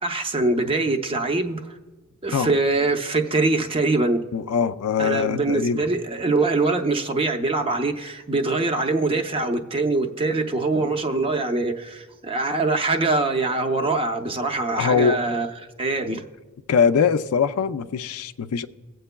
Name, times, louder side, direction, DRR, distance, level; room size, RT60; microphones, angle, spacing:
voice 1, 0.0-1.6 2.2-4.2 5.0-15.5 15.8-16.2, right 3 dB, 25° right, 0.6 m, -23 dB
voice 2, 4.3-5.9 14.8-15.2 16.1-16.2 16.7-18.7, left 6 dB, 80° left, 0.4 m, -22 dB
22.5 x 7.8 x 2.2 m
head